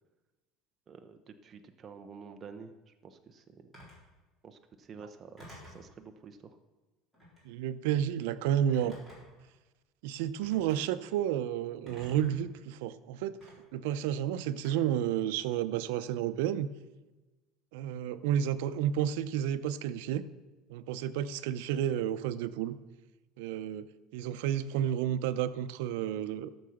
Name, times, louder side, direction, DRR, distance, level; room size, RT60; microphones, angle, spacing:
voice 1, 0.9-3.7 4.4-6.6, right 5 dB, 25° right, 6 dB, 0.6 m, -50 dB
Telephone, 3.7-4.1 5.4-5.9 7.1-7.5 8.7-9.4 10.4-10.8 11.9-12.4 13.4-13.5 14.6-15.1, equal, 10° left, 3.9 m, -51 dB
voice 2, 7.4-8.9 10.0-13.3 13.7-16.7 17.7-20.2 20.7-22.8 23.4-23.9 24.1-26.5, right 10 dB, 85° right, 14 dB, 0.6 m, -31 dB
13.5 x 6.9 x 6.4 m, 1.2 s
cardioid pair, 175°, 0 cm